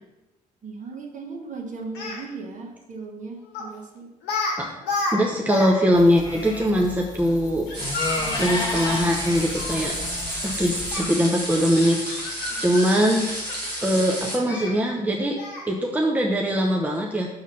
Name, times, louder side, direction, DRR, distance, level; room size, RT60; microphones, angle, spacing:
voice 1, 0.6-4.1 12.5-12.8, right 4 dB, 40° right, 1 dB, 1.4 m, -37 dB
Speech, 2.0-2.2 3.5-3.8 4.2-4.6 4.8-5.7 6.0-6.1 7.7-9.8 10.9-11.1 11.7-13.8 14.5-14.7 15.4-15.7, left 3 dB, 60° left, 1.3 m, -31 dB
voice 2, 5.1-7.7 8.4-9.9 10.4-12.0 12.6-13.3 13.8-15.4 15.7-17.3, equal, 10° right, 0 dB, 0.8 m, -21 dB
sound 1, 5.9-11.0, left 2 dB, 20° left, 1.5 m, -32 dB
Deep Frying French Fries, 7.7-14.4, equal, 90° right, 1.3 m, -31 dB
6.1 x 3.7 x 5.6 m, 1.0 s
figure-of-eight pair, 45°, 20 cm